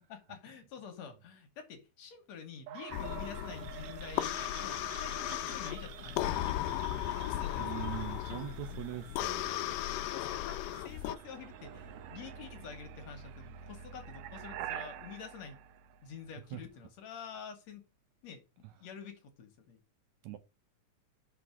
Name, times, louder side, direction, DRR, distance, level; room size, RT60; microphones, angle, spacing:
voice 1, 0.1-6.4 7.2-7.7 8.2-8.6 10.1-15.6 16.0-17.8 18.2-19.8, left 7 dB, 65° left, 2.2 m, -48 dB
sound 1, 2.7-16.5, right 10 dB, 90° right, 2.4 m, -47 dB
sound 2, 2.9-11.2, left 14 dB, 85° left, 2.1 m, -36 dB
voice 2, 7.6-9.7 16.5-16.6 20.2-20.4, right 13 dB, 70° right, 1.9 m, -42 dB
6.0 x 4.7 x 5.9 m
omnidirectional pair, 3.7 m